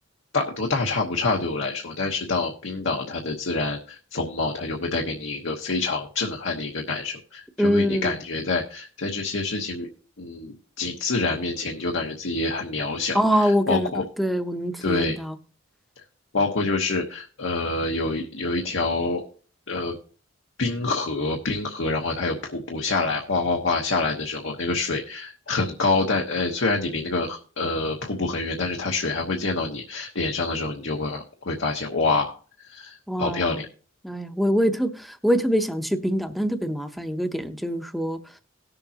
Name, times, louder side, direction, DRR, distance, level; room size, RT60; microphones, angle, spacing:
voice 1, 0.3-9.9 10.2-14.0 14.8-15.2 16.3-19.3 19.7-20.0 20.6-32.4 32.7-33.7, left 3 dB, 80° left, 1.1 m, -26 dB
voice 2, 7.6-8.2 13.1-15.4 33.1-33.6 34.0-38.2, equal, ahead, 0.7 m, -24 dB
18.0 x 6.9 x 2.8 m
head